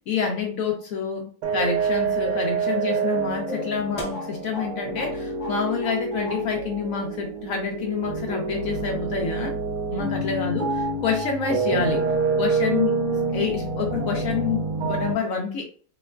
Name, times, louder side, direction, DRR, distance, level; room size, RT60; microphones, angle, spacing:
voice 1, 0.1-9.5 9.9-12.0 12.4-15.7, left 6 dB, 70° left, 1 dB, 0.9 m, -28 dB
sound 1, 1.4-15.1, right 4 dB, 70° right, 1.1 m, -27 dB
sound 2, 1.6-1.9 2.2-2.5 2.9-3.2 3.5-4.7 5.0-5.1 5.4-6.0 6.2-6.4, left 2 dB, 30° left, 0.8 m, -35 dB
3.3 x 3.0 x 2.2 m, 0.44 s
omnidirectional pair, 1.8 m